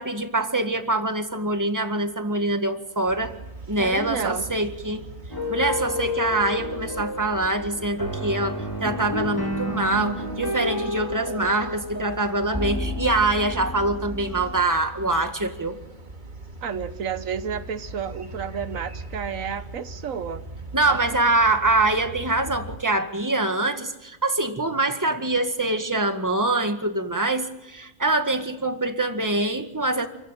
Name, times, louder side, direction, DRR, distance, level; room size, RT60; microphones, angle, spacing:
voice 1, 0.0-3.3 3.7-5.0 5.5-15.8 20.7-30.1, right 2 dB, 15° right, 7 dB, 1.8 m, -24 dB
sound 1, 3.0-22.8, right 2 dB, 35° right, 2.3 m, -40 dB
voice 2, 3.8-4.5 16.6-20.4 20.8-21.0, right 7 dB, 80° right, 11 dB, 1.4 m, -31 dB
sound 2, 5.3-14.6, left 1 dB, 15° left, 2.8 m, -31 dB
28.5 x 15.5 x 9.2 m, 1.1 s
omnidirectional pair, 1.4 m